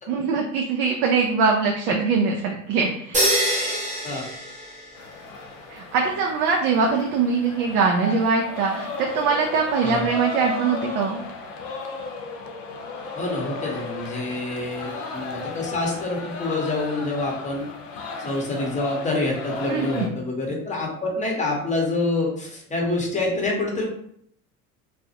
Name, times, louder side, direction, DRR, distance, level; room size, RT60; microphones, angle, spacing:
voice 1, 0.1-3.2 5.7-11.2 19.7-20.1, right 5 dB, 55° right, 1 dB, 0.5 m, -22 dB
sound 1, 3.1-5.3, right 1 dB, 15° right, 0.7 m, -25 dB
sound 2, 4.9-20.1, left 3 dB, 55° left, 0.6 m, -35 dB
voice 2, 13.2-23.9, left 2 dB, 15° left, -1 dB, 0.8 m, -27 dB
2.2 x 2.0 x 2.7 m, 0.66 s
hypercardioid pair, 70°, 43 cm